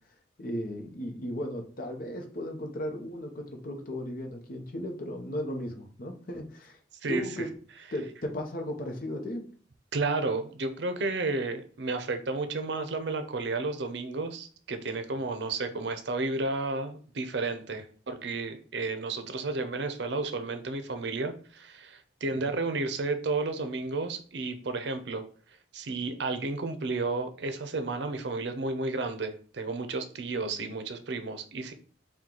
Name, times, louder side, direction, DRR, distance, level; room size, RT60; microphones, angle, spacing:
voice 1, 0.4-6.8 7.1-7.5 7.9-9.5 22.4-22.6 30.3-30.8, left 1 dB, 50° left, 3 dB, 0.7 m, -36 dB
voice 2, 9.9-25.2 25.7-31.7, right 3 dB, 65° right, 9 dB, 0.6 m, -32 dB
4.4 x 2.3 x 3.7 m, 0.44 s
head